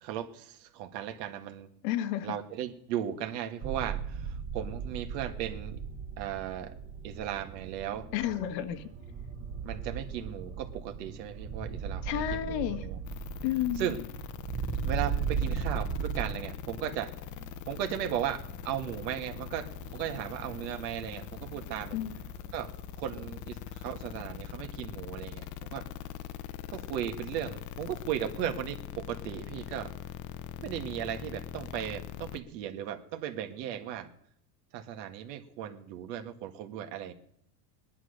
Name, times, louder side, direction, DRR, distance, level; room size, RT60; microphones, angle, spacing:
voice 1, 0.0-1.7 2.2-5.8 6.2-6.7 7.0-8.1 9.6-13.0 13.8-14.0 14.8-17.1 17.7-22.0 22.5-22.7 23.0-25.9 26.7-29.9 30.6-34.1 34.7-37.1, right 10 dB, 80° right, 7 dB, 1.9 m, -36 dB
voice 2, 1.8-2.3 8.1-8.9 12.0-12.8 13.4-13.8 21.9-22.1, left 12 dB, 75° left, 8 dB, 1.6 m, -31 dB
sound 1, 3.6-16.4, right 6 dB, 60° right, 2.3 m, -36 dB
sound 2, 5.6-23.4, right 6 dB, 25° right, 1.2 m, -52 dB
sound 3, 13.1-32.4, left 10 dB, 35° left, 0.8 m, -42 dB
19.0 x 11.0 x 6.6 m, 0.71 s
supercardioid pair, 120°, 49 cm